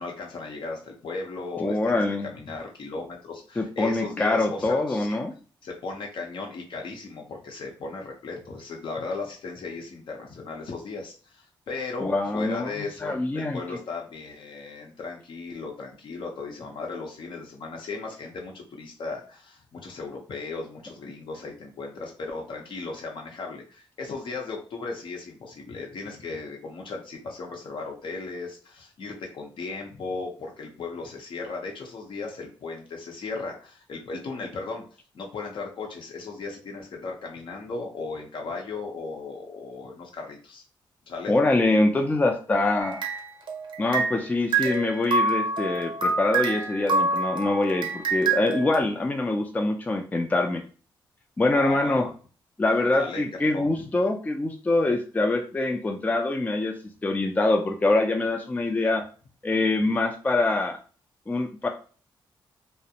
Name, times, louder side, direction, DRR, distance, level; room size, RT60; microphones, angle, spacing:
voice 1, 0.0-5.2 5.6-34.8 35.1-40.6 41.1-41.3 51.5-52.1 53.0-53.8, left 3 dB, 70° left, 1 dB, 0.7 m, -36 dB
voice 2, 1.6-2.3 3.6-5.3 12.0-12.7 13.0-13.6 41.3-43.0 43.8-50.6 51.4-52.1 52.6-56.8 57.0-59.0 59.4-60.8 61.3-61.7, left 2 dB, 20° left, 3 dB, 0.3 m, -24 dB
sound 1, 42.8-44.3 44.5-48.8, right 3 dB, 65° right, 0.6 m, -27 dB
2.4 x 2.0 x 2.8 m, 0.39 s
cardioid pair, 85°, 9 cm